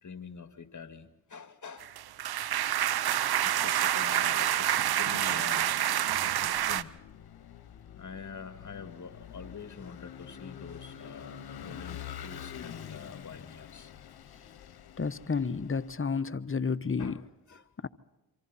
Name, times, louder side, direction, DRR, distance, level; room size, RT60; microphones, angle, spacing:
voice 1, 0.0-1.9 3.4-5.7 6.4-7.0 7.9-13.9 17.0-17.6, left 5 dB, 50° left, 2.1 m, -45 dB
sound 1, 1.8-6.8, right 11 dB, 80° right, 0.8 m, -28 dB
Vehicle / Engine, 6.3-16.0, left 9 dB, 80° left, 1.2 m, -46 dB
voice 2, 15.0-17.1 17.8-17.9, left 5 dB, 35° left, 1.1 m, -31 dB
26.5 x 25.0 x 4.3 m
supercardioid pair, 45°, 38 cm